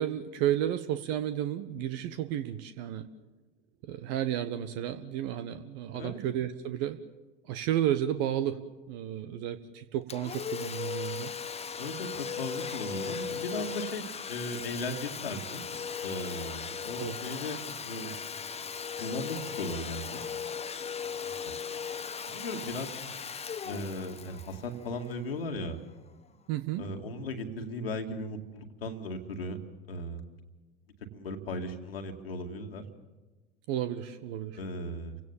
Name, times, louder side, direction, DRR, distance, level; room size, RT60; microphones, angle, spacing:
voice 1, 0.0-3.1 3.8-7.0 7.5-8.6 8.9-11.3 17.0-17.2 26.5-26.8 33.7-34.6, right 11 dB, 55° right, 10 dB, 1.2 m, -32 dB
Domestic sounds home sounds, 10.1-25.6, left 6 dB, 20° left, 1.3 m, -38 dB
voice 2, 11.8-15.6 16.0-18.1 19.0-20.2 21.5-21.6 22.2-22.9 23.6-25.8 26.8-29.6 29.9-30.2 31.1-32.9 34.5-35.2, left 1 dB, 80° left, 4 dB, 2.1 m, -37 dB
29.5 x 17.0 x 7.2 m, 1.2 s
figure-of-eight pair, 75°, 29 cm